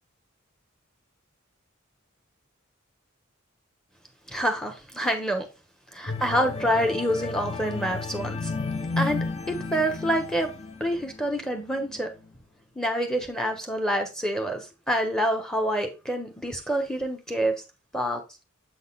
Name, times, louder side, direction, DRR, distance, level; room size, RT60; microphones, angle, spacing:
voice 1, 4.3-5.5 5.9-8.5 9.0-10.5 10.8-12.1 12.7-17.6 17.9-18.2, equal, 5° left, 1.3 m, -27 dB
sound 1, 6.1-11.3 11.8-12.0, left 3 dB, 30° left, 0.6 m, -33 dB
7.7 x 4.0 x 4.0 m
head